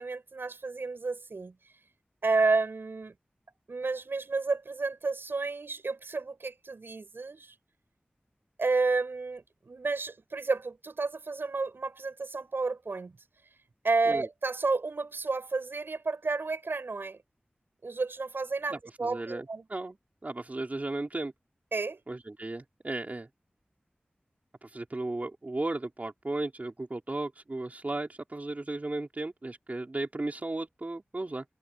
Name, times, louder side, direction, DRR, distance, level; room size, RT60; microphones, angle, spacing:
voice 1, 0.0-1.6 2.2-3.1 3.7-7.5 8.6-13.2 13.8-17.2 17.8-19.6 21.7-22.0, right 3 dB, 85° right, 7.5 m, -31 dB
voice 2, 18.7-20.0 20.2-21.3 22.1-23.3 24.6-31.4, right 2 dB, 45° right, 4.2 m, -35 dB
wide cardioid pair, 65°, 4 cm